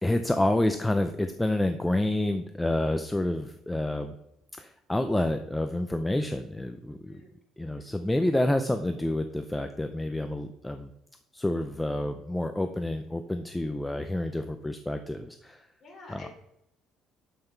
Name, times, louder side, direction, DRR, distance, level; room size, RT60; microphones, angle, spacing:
voice 1, 0.0-4.2 4.6-7.2 7.6-10.9 11.3-15.7 16.1-16.3, left 1 dB, 5° left, 7 dB, 0.5 m, -28 dB
voice 2, 7.0-7.4 7.6-7.9 15.8-16.3, left 2 dB, 30° left, -1 dB, 3.6 m, -49 dB
12.0 x 5.9 x 4.5 m, 0.81 s
cardioid pair, 140°, 0 cm